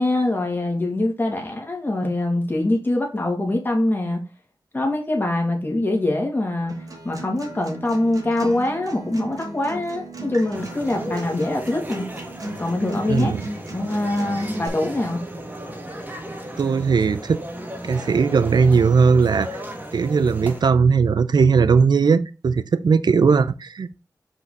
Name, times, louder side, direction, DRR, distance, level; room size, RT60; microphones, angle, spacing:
voice 1, 0.0-4.2 4.7-6.7 7.0-12.1 12.6-13.3 13.7-15.2, left 2 dB, 30° left, 2.2 m, -23 dB
Acoustic guitar, 6.7-14.7, right 1 dB, 55° right, 2.4 m, -35 dB
sound 1, 10.5-20.6, right 1 dB, 25° right, 1.6 m, -35 dB
voice 2, 13.1-13.4 16.6-17.4 17.8-19.6 19.9-23.9, right 5 dB, 75° right, 0.5 m, -18 dB
5.5 x 5.4 x 3.8 m
wide cardioid pair, 90°, 7 cm